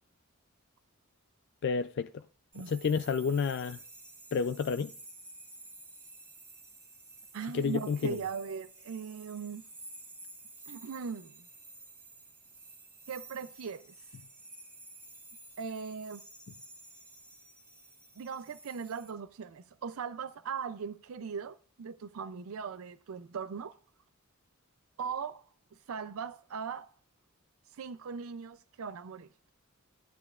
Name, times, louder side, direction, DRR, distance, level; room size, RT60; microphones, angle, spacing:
voice 1, 1.6-2.2 2.6-3.8 4.3-4.9 7.5-8.2, left 5 dB, 55° left, 0.3 m, -30 dB
sound 1, 2.5-19.1, right 2 dB, 15° right, 1.1 m, -52 dB
voice 2, 7.3-9.7 10.7-11.4 13.1-13.9 15.6-16.2 18.2-23.8 25.0-25.4 25.7-26.9 27.7-29.5, right 6 dB, 85° right, 0.4 m, -39 dB
15.0 x 9.9 x 2.4 m
head